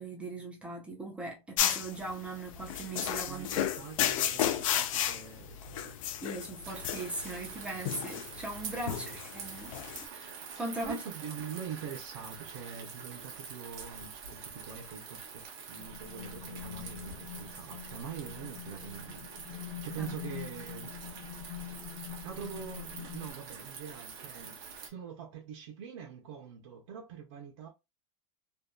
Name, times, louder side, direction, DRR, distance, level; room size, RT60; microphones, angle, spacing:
voice 1, 0.0-3.5 6.2-9.7 10.1-10.3 10.6-11.0 20.0-20.1, right 2 dB, 5° right, 0.4 m, -39 dB
sound 1, 1.6-10.0, left 10 dB, 90° left, 0.4 m, -33 dB
voice 2, 3.3-6.3 8.9-9.1 10.8-15.4 15.7-19.3 19.8-21.0 22.2-27.7, right 7 dB, 85° right, 0.7 m, -44 dB
sound 2, 6.6-24.9, right 6 dB, 50° right, 0.8 m, -46 dB
sound 3, 15.8-23.3, left 9 dB, 15° left, 1.0 m, -45 dB
2.5 x 2.3 x 2.2 m
supercardioid pair, 170°, 17 cm